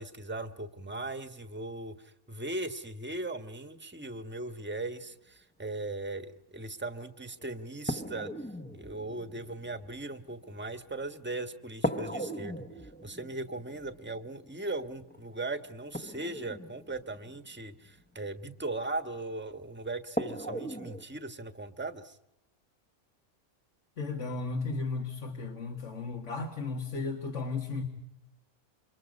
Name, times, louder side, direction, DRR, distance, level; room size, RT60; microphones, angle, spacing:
voice 1, 0.0-8.3 8.7-22.2, right 2 dB, 10° right, 9 dB, 1.2 m, -38 dB
sound 1, 7.0-7.1 7.9-11.3 11.8-18.0 19.3-19.4 20.2-21.1, equal, 10° left, 0.8 m, -38 dB
voice 2, 24.0-27.8, left 3 dB, 70° left, 2 dB, 2.2 m, -35 dB
29.0 x 25.0 x 5.3 m, 0.86 s
omnidirectional pair, 1.3 m